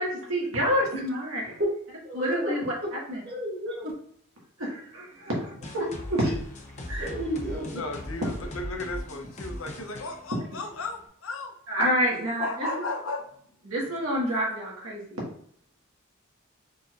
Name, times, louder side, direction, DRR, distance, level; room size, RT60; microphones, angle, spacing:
voice 1, 0.0-1.4 2.1-2.7 3.1-3.2 4.6-6.2 6.9-7.1 11.7-12.5 13.7-15.2, equal, 80° right, -3 dB, 1.7 m, -28 dB
voice 2, 2.0-2.5 2.8-2.9 3.2-3.9 6.2-6.3 7.0-7.8, equal, 50° right, -4 dB, 1.9 m, -31 dB
sound 1, 5.6-11.1, left 1 dB, 35° left, 0.8 m, -39 dB
voice 3, 7.7-11.5 12.4-13.3, left 2 dB, 70° left, 4 dB, 0.8 m, -35 dB
4.6 x 4.1 x 2.5 m, 0.63 s
head